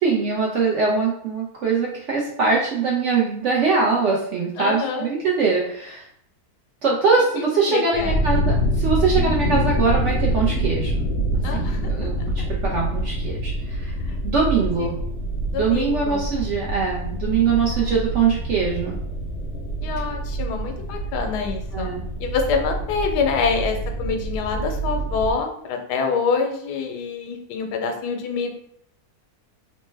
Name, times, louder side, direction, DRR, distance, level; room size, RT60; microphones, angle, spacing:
voice 1, 0.0-6.1 6.8-11.0 11.5-13.9 14.2-15.0 15.5-19.0 21.7-22.0, right 4 dB, 70° right, -2 dB, 0.7 m, -22 dB
voice 2, 4.6-5.1 7.4-8.1 11.4-12.1 14.3-14.5 14.8-14.9 15.5-16.2 17.6-18.0 19.8-21.9 22.2-28.5, left 5 dB, 85° left, 4 dB, 1.2 m, -26 dB
sound 1, 7.9-25.3, right 1 dB, 65° left, 0.7 m, -26 dB
3.1 x 2.1 x 3.2 m, 0.69 s
omnidirectional pair, 1.7 m